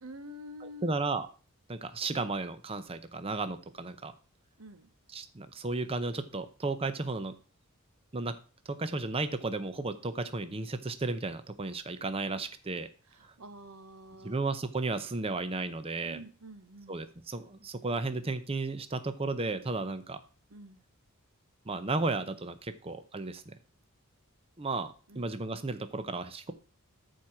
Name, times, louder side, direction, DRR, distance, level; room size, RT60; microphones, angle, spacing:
voice 1, 0.0-1.0 4.6-4.9 13.1-14.4 16.0-17.0 20.5-20.8 25.1-25.3, equal, 75° right, 1.1 m, -48 dB
voice 2, 0.8-1.3 1.7-4.1 5.1-7.3 8.1-8.4 8.7-12.9 14.2-16.2 16.9-20.2 21.7-23.5 24.6-26.5, right 3 dB, 25° right, 0.7 m, -34 dB
13.5 x 4.6 x 5.8 m
head